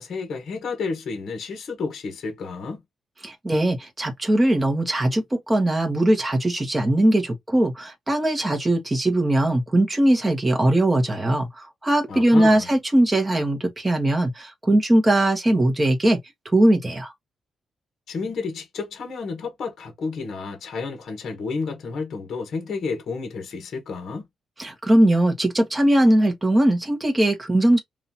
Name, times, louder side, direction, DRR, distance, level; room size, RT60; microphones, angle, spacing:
voice 1, 0.0-2.8 12.1-12.7 18.1-24.3, left 4 dB, 50° left, 1.3 m, -31 dB
voice 2, 3.2-16.2 16.5-17.1 24.6-27.8, right 1 dB, 10° right, 0.9 m, -20 dB
5.3 x 2.4 x 2.8 m
wide cardioid pair, 180°, 0 cm